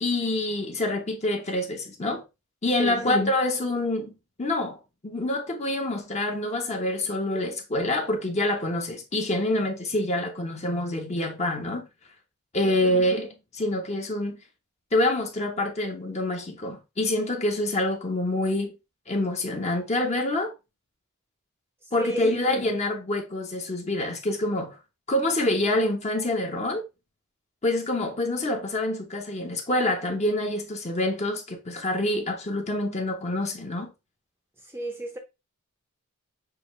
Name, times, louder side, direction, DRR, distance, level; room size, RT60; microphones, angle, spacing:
voice 1, 0.0-2.2 2.6-4.1 4.4-11.9 12.5-14.4 14.9-18.7 19.1-20.5 21.9-24.8 25.1-26.8 27.6-33.9, left 1 dB, 30° left, 1.0 m, -26 dB
voice 2, 12.6-13.0 22.0-22.4 34.6-35.2, right 1 dB, 10° right, 0.7 m, -34 dB
6.0 x 2.9 x 3.1 m
head